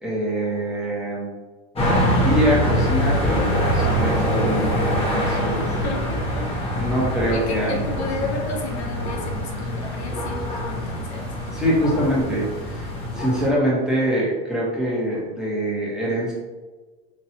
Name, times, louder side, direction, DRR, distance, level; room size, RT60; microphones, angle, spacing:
voice 1, 0.0-1.3 1.9-5.6 6.7-7.8 11.5-16.3, equal, ahead, -7 dB, 1.3 m, -24 dB
sound 1, 1.7-13.5, equal, 20° left, 1.2 m, -24 dB
voice 2, 5.8-6.4 7.3-11.3, left 3 dB, 90° left, 2 dB, 1.0 m, -33 dB
4.5 x 2.9 x 2.8 m, 1.3 s
supercardioid pair, 125°, 31 cm